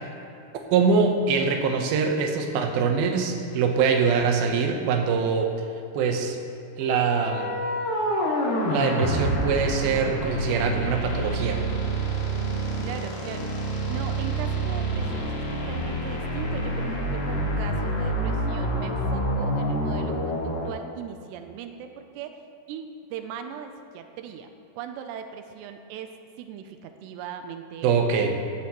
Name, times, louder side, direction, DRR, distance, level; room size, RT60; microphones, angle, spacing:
voice 1, 0.7-5.5 5.9-6.4 6.8-7.5 8.7-11.6 27.8-28.4, right 5 dB, 70° right, 3 dB, 2.7 m, -23 dB
sound 1, 6.8-20.7, right 1 dB, 65° left, 4.0 m, -27 dB
voice 2, 12.4-22.3 22.7-28.4, right 8 dB, 90° right, 6 dB, 2.8 m, -39 dB
16.5 x 13.5 x 3.1 m, 2.8 s
omnidirectional pair, 4.9 m